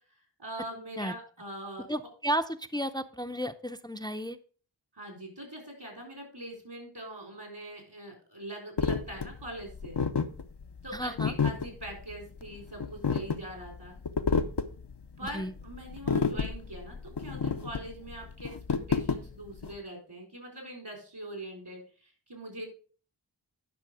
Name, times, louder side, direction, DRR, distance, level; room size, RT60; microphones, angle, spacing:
voice 1, 0.1-1.9 4.9-10.0 10.8-14.0 15.2-22.7, right 1 dB, 75° right, 2 dB, 4.1 m, -43 dB
voice 2, 1.9-4.4 10.9-11.3 15.2-15.5, equal, 10° left, 8 dB, 0.5 m, -33 dB
sound 1, 8.8-19.7, left 5 dB, 75° left, 0.8 m, -31 dB
10.5 x 5.8 x 4.8 m, 0.40 s
wide cardioid pair, 40°, 41 cm